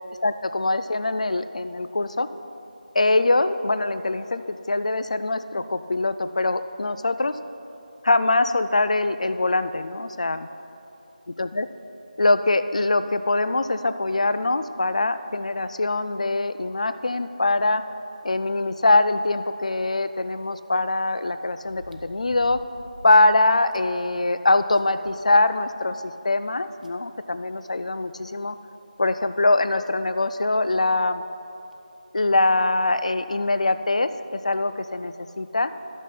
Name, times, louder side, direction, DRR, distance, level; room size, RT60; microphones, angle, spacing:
voice 1, 0.2-2.3 2.9-7.3 8.0-10.5 11.4-11.7 12.2-17.8 18.2-22.6 23.0-28.6 29.0-31.2 32.1-35.8, left 2 dB, 50° left, 11 dB, 0.4 m, -23 dB
sound 1, 19.6-19.7 21.6-23.3 23.7-23.8 24.3-24.4 24.7-25.8 26.8-26.9 28.4-28.5 29.0-29.1 29.9-30.1 31.4-31.5 31.7-31.8 33.5-33.8 34.5-34.6, right 1 dB, 65° right, 0.8 m, -46 dB
11.0 x 6.2 x 5.7 m, 2.8 s
figure-of-eight pair, 170°, 5 cm